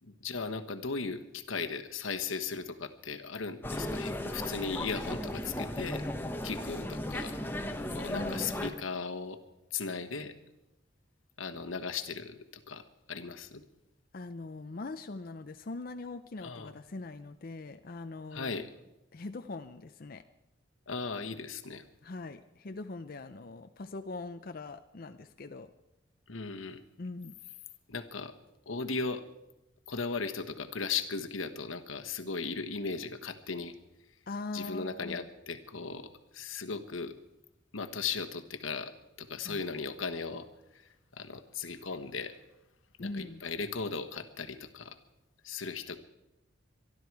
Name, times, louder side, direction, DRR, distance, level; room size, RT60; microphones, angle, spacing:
voice 1, 0.0-6.0 6.4-7.4 7.9-9.4 9.7-10.3 11.4-13.6 16.4-16.7 18.3-18.7 20.9-21.8 26.3-26.8 27.9-28.3 28.7-29.2 29.9-33.7 34.5-37.1 37.7-40.5 41.1-42.4 43.0-45.0 45.4-46.0, left 4 dB, 80° left, 7 dB, 1.2 m, -37 dB
sound 1, 3.6-8.7, left 1 dB, 10° left, 1.0 m, -36 dB
voice 2, 8.1-8.6 14.1-18.6 19.1-20.2 22.0-25.7 27.0-27.3 34.3-35.3 39.4-39.6 43.0-43.4, left 3 dB, 45° left, 8 dB, 0.5 m, -41 dB
24.0 x 12.5 x 4.7 m, 0.93 s
head